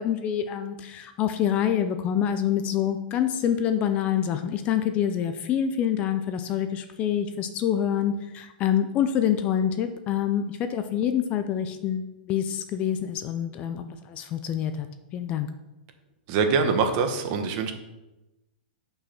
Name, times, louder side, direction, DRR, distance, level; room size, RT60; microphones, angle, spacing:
voice 1, 0.0-14.9 15.1-15.5, left 9 dB, 25° left, 9 dB, 0.4 m, -26 dB
voice 2, 16.3-17.7, right 5 dB, 35° right, 6 dB, 1.1 m, -24 dB
6.7 x 5.5 x 5.9 m, 0.99 s
hypercardioid pair, 160°, 5 cm